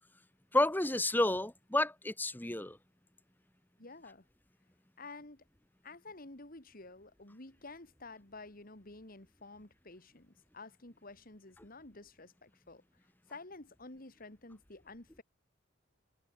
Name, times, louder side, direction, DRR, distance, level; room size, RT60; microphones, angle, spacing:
voice 1, 0.5-2.8, left 1 dB, 10° left, 1.1 m, -30 dB
voice 2, 3.8-4.2 5.0-5.4 5.8-12.8 13.3-15.2, left 3 dB, 50° left, 2.8 m, -51 dB
head